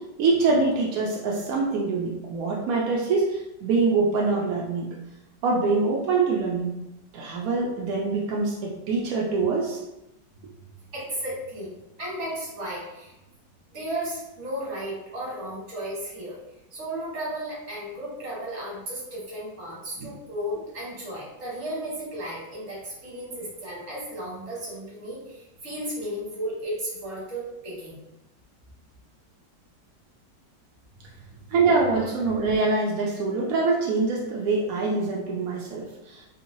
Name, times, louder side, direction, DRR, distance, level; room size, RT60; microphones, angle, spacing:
voice 1, 0.0-5.0 5.4-6.7 7.1-9.8 20.0-20.1 31.5-36.4, right 3 dB, 75° right, -3 dB, 0.8 m, -24 dB
voice 2, 10.9-11.7 12.0-13.2 13.7-16.4 16.7-28.0 31.1-31.2, right 1 dB, 40° right, -6 dB, 1.5 m, -34 dB
3.6 x 2.8 x 2.6 m, 0.93 s
omnidirectional pair, 2.1 m